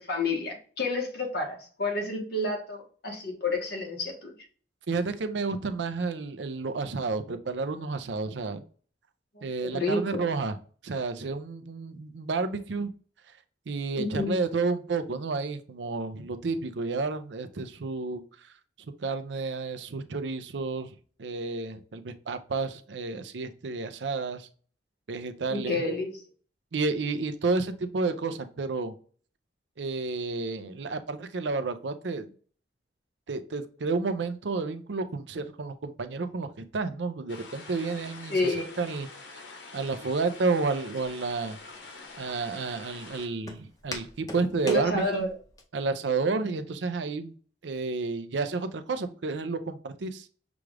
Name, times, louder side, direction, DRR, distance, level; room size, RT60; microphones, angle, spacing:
voice 1, 0.1-4.3 9.3-10.2 13.9-14.4 25.5-26.1 38.3-38.8 44.6-45.3, left 2 dB, 60° left, 1 dB, 1.3 m, -30 dB
voice 2, 4.9-8.6 9.4-10.6 10.8-12.9 13.7-18.2 19.0-24.5 25.1-25.8 26.7-28.9 29.8-32.3 33.3-39.4 39.7-41.6 42.2-45.3 45.7-47.4 47.6-50.3, right 3 dB, 75° right, 9 dB, 0.5 m, -31 dB
sound 1, 37.3-43.3, left 3 dB, 90° left, 1.0 m, -46 dB
Walk footsteps, 41.0-45.6, left 2 dB, 20° left, 0.7 m, -43 dB
6.0 x 2.4 x 3.3 m, 0.42 s
head